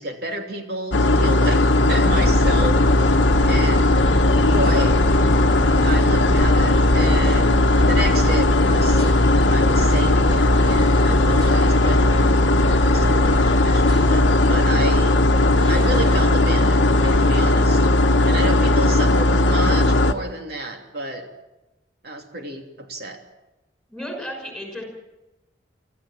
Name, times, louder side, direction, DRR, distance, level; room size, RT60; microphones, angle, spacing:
voice 1, 0.0-3.1 3.5-4.0 4.3-5.0 5.8-9.1 9.5-12.3 12.9-15.2 15.7-16.9 17.2-17.9 18.3-21.3 22.0-23.2, right 1 dB, 55° right, 3 dB, 3.1 m, -31 dB
sound 1, 0.9-20.1, left 2 dB, 80° left, 1.1 m, -17 dB
sound 2, 2.1-17.2, equal, 25° right, 5.0 m, -29 dB
voice 2, 23.9-24.9, equal, ahead, 2 dB, 6.0 m, -33 dB
26.0 x 14.5 x 7.6 m, 1.0 s
head